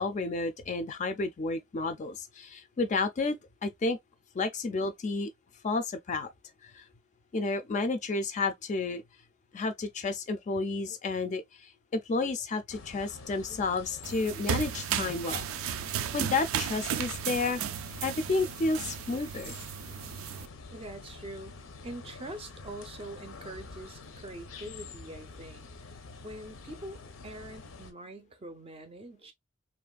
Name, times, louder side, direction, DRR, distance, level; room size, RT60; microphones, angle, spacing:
voice 1, 0.0-4.0 4.3-5.3 5.6-6.3 6.6-6.8 7.3-9.0 9.5-15.8 16.1-17.6 18.0-19.5, left 3 dB, 35° left, 0.4 m, -31 dB
sound 1, 12.7-27.9, left 4 dB, 80° left, 0.6 m, -47 dB
sound 2, 14.0-20.5, right 9 dB, 85° right, 0.3 m, -34 dB
voice 2, 20.7-25.7 26.2-29.3, right 1 dB, 30° right, 0.5 m, -44 dB
3.0 x 2.5 x 2.2 m
head